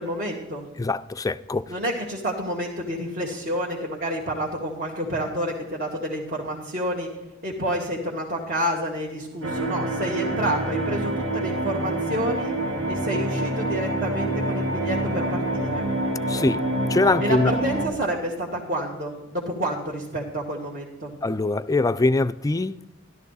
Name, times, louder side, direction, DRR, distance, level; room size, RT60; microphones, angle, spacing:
voice 1, 0.0-0.7 1.7-7.1 7.4-12.5 12.9-15.8 17.2-21.1, equal, 50° right, 2.0 m, -29 dB
voice 2, 0.8-1.7 16.3-16.6 16.9-17.5 21.2-22.8, left 2 dB, 15° left, 0.3 m, -23 dB
sound 1, 9.4-17.9, right 1 dB, 85° right, 2.4 m, -26 dB
13.0 x 12.0 x 4.1 m
head